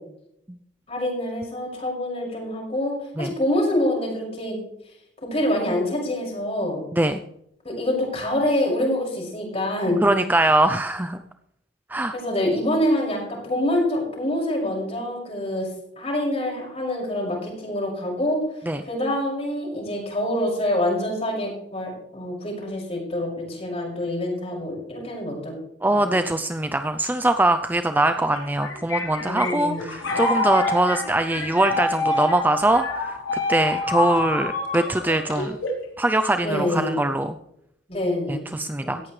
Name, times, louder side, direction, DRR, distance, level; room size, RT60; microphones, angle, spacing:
voice 1, 0.9-4.6 5.2-6.9 7.6-10.2 12.1-15.7 16.0-18.4 18.8-25.5 25.9-26.2 29.2-29.9 36.4-37.0 37.9-38.5 38.8-38.9, left 1 dB, 30° left, -2 dB, 6.0 m, -26 dB
voice 2, 10.0-11.2 11.9-12.1 18.7-18.8 25.8-35.6 36.0-37.3 38.3-39.0, right 1 dB, 10° right, 8 dB, 0.4 m, -22 dB
sound 1, 28.3-35.9, left 2 dB, 85° left, 4.1 m, -27 dB
18.0 x 14.5 x 3.2 m, 0.79 s
head